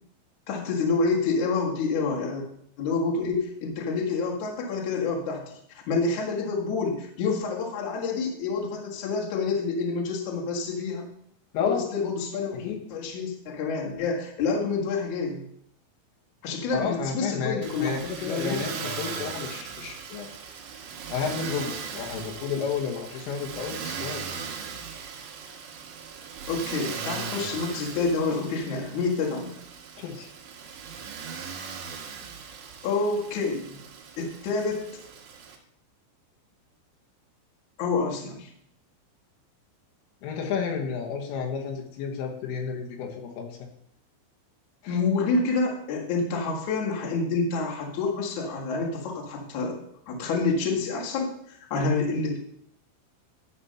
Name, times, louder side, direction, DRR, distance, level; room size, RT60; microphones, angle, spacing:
voice 1, 0.5-2.4 2.8-11.1 11.6-12.5 12.9-15.4 16.4-18.9 26.5-29.5 32.8-33.8 34.2-34.9 37.8-38.5 44.9-49.8 50.1-52.4, left 4 dB, 55° left, -1 dB, 2.3 m, -28 dB
voice 2, 16.7-20.3 21.1-24.3 30.0-30.3 40.2-43.6 44.8-45.0, left 6 dB, 85° left, 1 dB, 4.0 m, -31 dB
Motor vehicle (road), 17.6-35.6, right 6 dB, 90° right, 1.9 m, -38 dB
12.0 x 4.4 x 5.7 m, 0.69 s
omnidirectional pair, 5.6 m